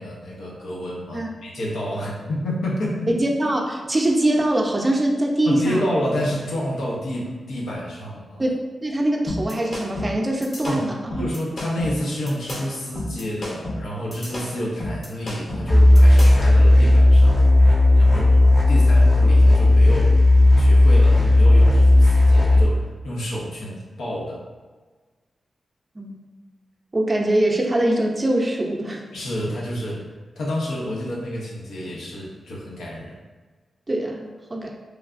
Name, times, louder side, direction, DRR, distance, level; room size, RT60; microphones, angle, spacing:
voice 1, 0.0-3.1 5.4-8.4 10.6-10.9 11.2-17.4 18.0-18.4 18.7-20.2 20.6-24.4 29.1-30.1 30.4-33.2, equal, 85° left, -4 dB, 0.7 m, -29 dB
voice 2, 3.2-5.8 8.4-11.3 26.0-26.2 26.9-29.0 33.9-34.8, right 1 dB, 30° right, 0 dB, 0.5 m, -23 dB
sound 1, 9.3-16.5, left 1 dB, 50° left, 0.9 m, -31 dB
sound 2, 15.7-22.6, left 1 dB, 20° left, 0.5 m, -13 dB
3.2 x 2.3 x 2.5 m, 1.4 s
cardioid pair, 50°, 0 cm